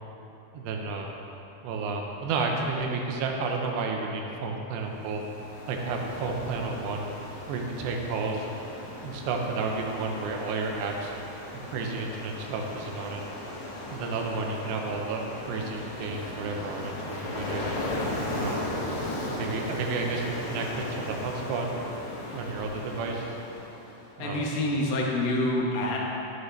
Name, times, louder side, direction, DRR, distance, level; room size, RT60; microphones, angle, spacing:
voice 1, 0.5-1.1 1.6-5.2 5.7-7.1 7.5-8.5 9.0-11.1 11.5-13.2 13.9-17.7 18.3-18.7 19.3-21.7 22.3-23.4 24.2-24.4, right 4 dB, 80° right, 1 dB, 2.9 m, -31 dB
Ocean, 4.9-24.0, left 1 dB, 90° left, 1.6 m, -37 dB
voice 2, 24.2-26.0, left 1 dB, 70° left, -2 dB, 2.3 m, -27 dB
10.5 x 7.9 x 3.3 m, 3.0 s
omnidirectional pair, 5.0 m